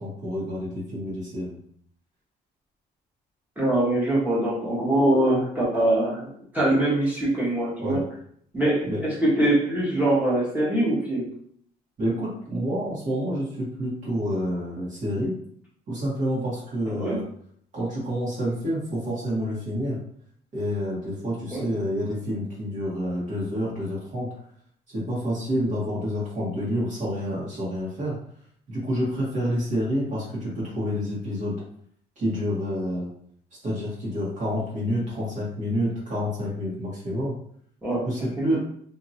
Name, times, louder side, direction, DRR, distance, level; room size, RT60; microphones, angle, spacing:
voice 1, 0.0-1.6 7.8-8.0 8.8-9.0 12.0-15.3 15.9-17.2 17.7-20.0 20.5-24.3 24.9-28.2 28.7-31.6 32.2-33.1 33.6-37.3 38.0-38.6, equal, 50° right, -7 dB, 1.5 m, -28 dB
voice 2, 3.6-8.0 8.5-11.3 16.8-17.2 21.5-21.7 37.8-38.0 38.4-38.6, right 1 dB, 10° right, -7 dB, 1.3 m, -23 dB
2.8 x 2.8 x 2.8 m, 0.64 s
cardioid pair, 110°, 17 cm